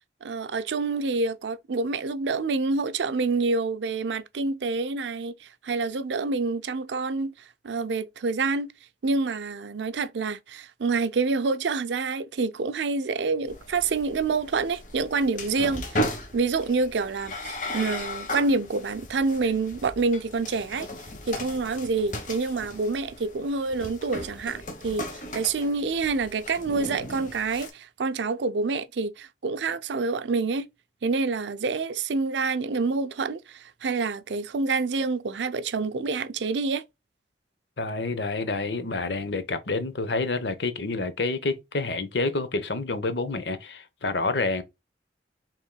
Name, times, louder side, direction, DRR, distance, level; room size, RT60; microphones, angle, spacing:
voice 1, 0.2-7.3 7.6-8.7 9.0-20.9 21.3-30.7 31.0-36.8, right 4 dB, 90° right, 0.5 m, -27 dB
sound 1, 13.5-27.7, equal, 45° left, 1.1 m, -36 dB
voice 2, 37.8-44.6, left 3 dB, 80° left, 0.8 m, -28 dB
5.5 x 3.7 x 2.2 m
head